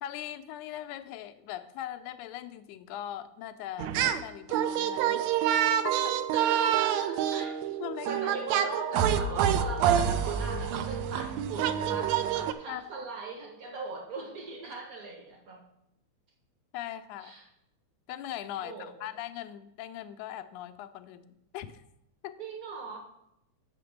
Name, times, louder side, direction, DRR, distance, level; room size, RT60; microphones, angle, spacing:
voice 1, 0.0-5.3 5.8-6.2 7.8-8.1 12.7-12.9 16.7-17.3 18.1-21.8 22.2-22.4, left 12 dB, 90° left, 10 dB, 2.1 m, -40 dB
sound 1, 3.8-4.2 4.5-12.5, right 9 dB, 80° right, 1.7 m, -27 dB
voice 2, 6.3-7.6 8.0-15.6 17.2-17.5 18.6-19.1 22.4-23.0, right 4 dB, 50° right, 1 dB, 1.1 m, -39 dB
6.8 x 6.0 x 7.2 m, 0.83 s
omnidirectional pair, 3.4 m